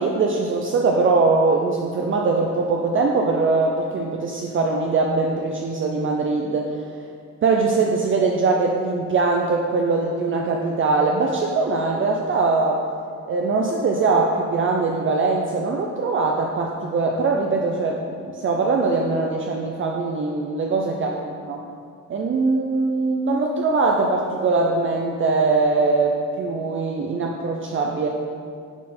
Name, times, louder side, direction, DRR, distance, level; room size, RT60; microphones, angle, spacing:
voice 1, 0.0-6.8 7.4-12.8 13.3-21.6 22.1-28.1, right 3 dB, 40° right, 0 dB, 0.6 m, -22 dB
9.8 x 4.4 x 4.3 m, 2.3 s
cardioid pair, 135°, 30 cm